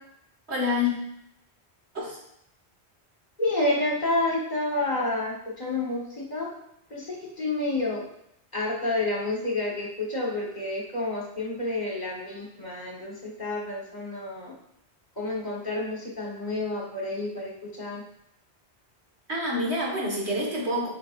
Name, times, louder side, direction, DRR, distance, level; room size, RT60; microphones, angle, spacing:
voice 1, 0.5-0.9 1.9-2.2 19.3-20.9, left 2 dB, 75° right, -2 dB, 1.9 m, -27 dB
voice 2, 3.4-6.5 6.9-8.0 8.5-14.5 15.2-18.0, left 2 dB, 40° left, -3 dB, 1.5 m, -29 dB
8.9 x 5.2 x 2.5 m, 0.78 s
omnidirectional pair, 1.1 m